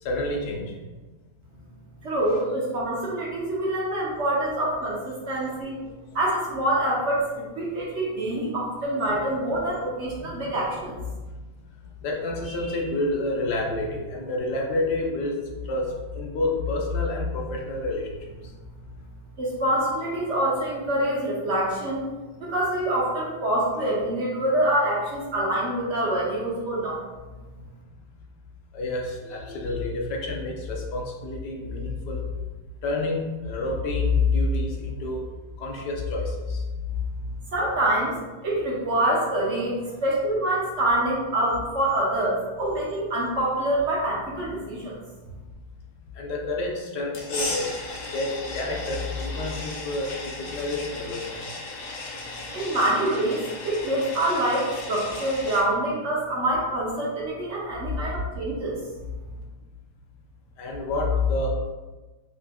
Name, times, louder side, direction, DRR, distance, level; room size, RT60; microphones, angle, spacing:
voice 1, 0.0-0.7 2.3-2.4 5.4-5.5 10.2-10.3 12.0-18.1 28.7-32.2 32.8-35.2 35.6-36.6 46.1-47.7 48.1-51.4 60.6-61.5, left 2 dB, 75° left, -1 dB, 1.3 m, -28 dB
voice 2, 2.0-5.8 6.1-11.0 19.4-22.0 22.4-27.0 37.5-38.2 38.4-44.9 52.5-58.8, right 1 dB, 55° right, -4 dB, 0.8 m, -26 dB
sound 1, 47.1-55.6, left 2 dB, 60° left, 1.0 m, -36 dB
3.8 x 3.4 x 2.2 m, 1.2 s
omnidirectional pair, 1.8 m